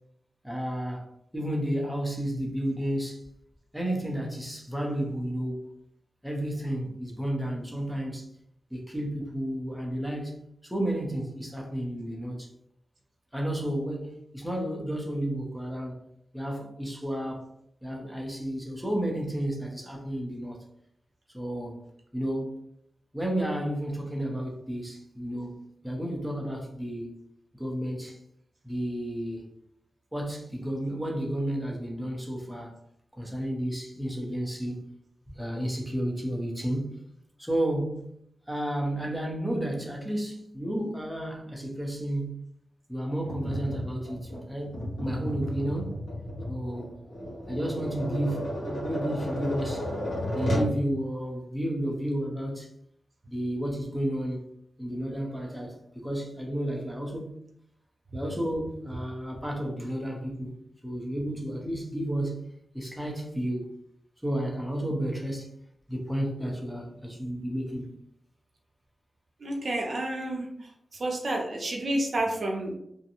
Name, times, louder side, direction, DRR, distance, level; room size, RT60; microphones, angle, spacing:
voice 1, 0.4-1.1 1.3-3.3 3.7-5.6 6.2-8.3 8.7-12.5 13.3-16.0 16.3-17.5 17.8-20.6 21.3-21.8 22.1-22.6 23.1-27.2 27.6-28.2 28.6-29.5 30.1-32.8 33.1-34.9 35.3-37.0 37.4-38.0 38.5-42.4 42.9-46.0 46.5-46.9 47.5-49.9 50.3-52.7 53.3-54.5 54.8-57.4 58.1-60.5 60.8-62.4 62.7-63.7 64.2-65.5 65.9-67.9, right 1 dB, 5° right, 0.7 m, -32 dB
Tap, 43.2-50.8, equal, 80° left, 0.9 m, -33 dB
voice 2, 69.4-70.4 71.0-72.7, right 1 dB, 60° right, 0.6 m, -29 dB
2.6 x 2.2 x 2.8 m
cardioid pair, 75°, 0 cm